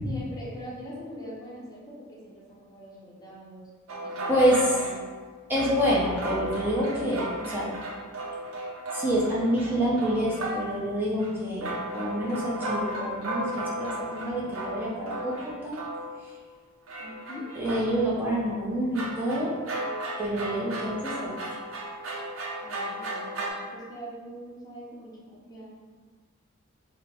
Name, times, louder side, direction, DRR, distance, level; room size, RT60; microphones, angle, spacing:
voice 1, 0.0-3.7 4.0-5.1 17.0-17.5 22.6-25.7, equal, 20° left, -6 dB, 0.8 m, -42 dB
sound 1, 3.9-10.9 11.2-11.3 11.6-16.4 16.9-18.1 18.9-23.5, right 1 dB, 65° right, 0.6 m, -35 dB
voice 2, 4.3-4.7 5.5-7.7 8.9-15.8 17.6-19.5 20.2-21.4, equal, 10° right, -6 dB, 0.9 m, -27 dB
4.6 x 2.2 x 3.6 m, 1.4 s
head